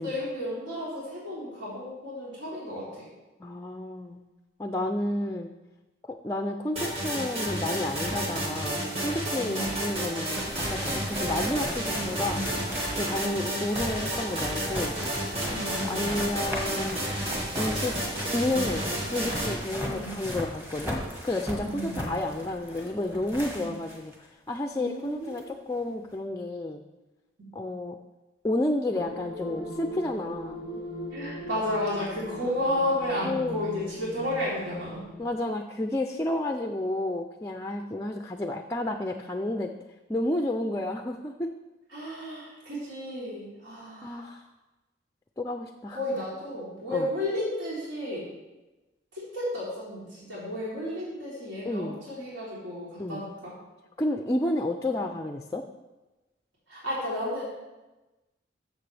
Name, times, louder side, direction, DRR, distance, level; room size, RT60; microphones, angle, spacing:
voice 1, 0.0-3.0 9.4-9.8 11.8-12.0 15.4-16.1 19.8-20.2 21.6-22.1 24.7-25.5 27.4-27.5 31.1-35.0 41.9-44.3 45.9-48.3 49.1-53.5 56.7-57.5, left 1 dB, 75° right, -7 dB, 3.4 m, -33 dB
voice 2, 3.4-4.2 4.6-5.5 6.1-12.4 13.0-14.9 15.9-17.0 17.5-17.9 18.3-21.0 21.2-26.8 27.5-28.0 28.4-30.7 33.2-33.7 35.2-39.7 40.1-41.5 44.0-44.4 45.4-46.0 46.9-47.1 51.6-52.0 53.0-53.3 54.0-55.6, left 1 dB, 15° left, 5 dB, 0.4 m, -31 dB
sound 1, 6.8-19.6, right 1 dB, 30° right, 1.9 m, -31 dB
sound 2, 10.1-24.2 24.6-24.7 25.4-25.5, equal, 10° right, 1.4 m, -37 dB
sound 3, 28.9-35.4, equal, 45° right, 3.4 m, -39 dB
13.0 x 7.2 x 3.3 m, 1.1 s
head